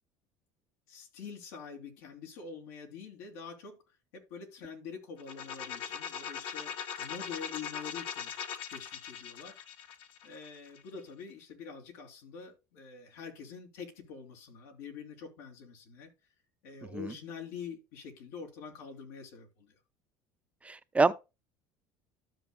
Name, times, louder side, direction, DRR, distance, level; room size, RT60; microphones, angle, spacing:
voice 1, 0.9-3.8 4.1-8.3 8.7-9.6 10.2-16.1 16.6-19.8, left 6 dB, 85° left, 3.1 m, -45 dB
sound 1, 5.2-11.0, left 8 dB, 65° left, 1.6 m, -40 dB
voice 2, 20.6-21.1, right 3 dB, 15° right, 0.6 m, -26 dB
12.5 x 6.7 x 2.3 m
cardioid pair, 120°, 9 cm